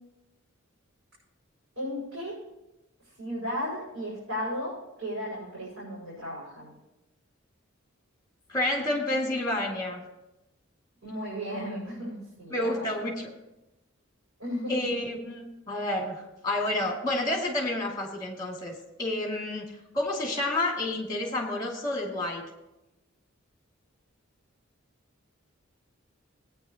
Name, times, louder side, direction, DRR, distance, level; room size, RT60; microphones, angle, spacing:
voice 1, 1.7-2.4 3.2-6.7 11.0-12.9 14.4-14.9, equal, 85° right, -8 dB, 5.1 m, -35 dB
voice 2, 8.5-10.0 12.5-13.3 14.7-22.4, left 1 dB, 20° left, 0 dB, 2.2 m, -30 dB
18.0 x 9.3 x 2.9 m, 0.94 s
head